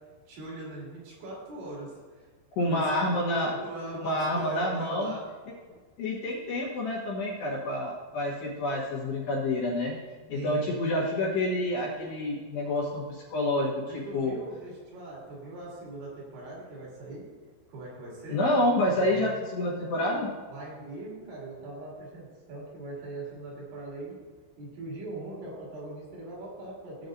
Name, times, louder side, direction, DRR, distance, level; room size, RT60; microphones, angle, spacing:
voice 1, 0.3-2.3 2.6-2.9 3.1-5.2 5.7-5.8 10.3-10.7 13.9-17.3 17.7-18.4 18.9-19.4 20.5-24.2 24.6-27.1, right 2 dB, 65° right, -6 dB, 4.8 m, -40 dB
voice 2, 2.6-3.5 3.9-5.1 6.0-9.9 10.3-13.7 14.1-14.3 18.3-20.3, left 1 dB, 65° left, -4 dB, 3.0 m, -28 dB
17.0 x 7.7 x 2.6 m, 1.5 s
omnidirectional pair, 5.9 m